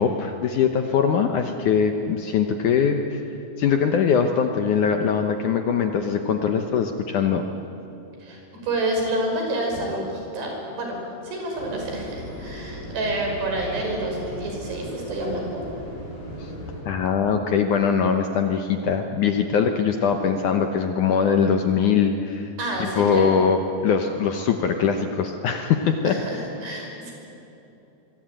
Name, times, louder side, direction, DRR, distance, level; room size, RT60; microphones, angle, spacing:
voice 1, 0.0-3.2 3.6-7.4 16.4-16.5 16.9-22.5 22.8-26.2, left 6 dB, 70° left, 5 dB, 2.0 m, -22 dB
voice 2, 8.2-11.0 11.2-15.6 22.6-23.4 26.0-27.1, right 1 dB, 85° right, 1 dB, 7.9 m, -28 dB
sound 1, 11.6-16.8, equal, 45° left, 6.7 m, -37 dB
25.0 x 23.0 x 9.1 m, 2.9 s
omnidirectional pair, 4.7 m